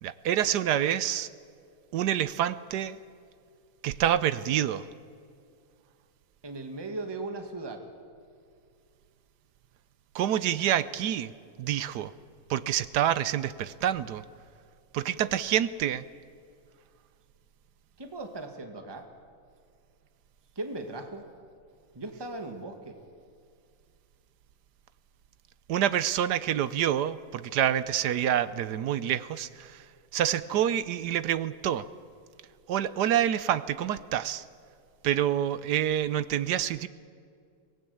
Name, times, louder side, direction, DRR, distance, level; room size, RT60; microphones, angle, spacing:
voice 1, 0.0-1.3 1.9-3.0 3.8-4.9 10.1-11.3 11.6-12.1 12.5-14.2 14.9-16.0 25.7-29.8 30.1-31.9 32.7-34.4 35.0-36.9, right 10 dB, 65° right, 15 dB, 1.1 m, -27 dB
voice 2, 6.4-7.9 18.0-19.1 20.6-21.2 21.9-23.0, right 2 dB, 10° right, 5 dB, 1.8 m, -38 dB
24.0 x 18.5 x 8.5 m, 2.3 s
omnidirectional pair, 2.3 m